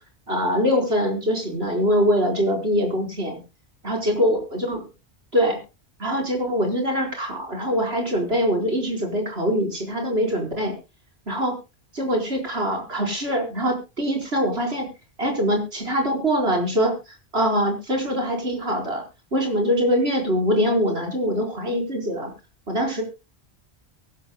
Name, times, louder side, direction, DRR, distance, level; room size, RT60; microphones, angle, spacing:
voice 1, 0.3-3.4 3.8-4.8 5.3-5.6 6.0-10.7 11.3-11.5 11.9-14.9 15.2-16.9 17.3-19.0 19.3-22.3 22.7-23.0, equal, 70° right, 3 dB, 4.8 m, -23 dB
23.0 x 11.5 x 2.2 m, 0.29 s
omnidirectional pair, 1.1 m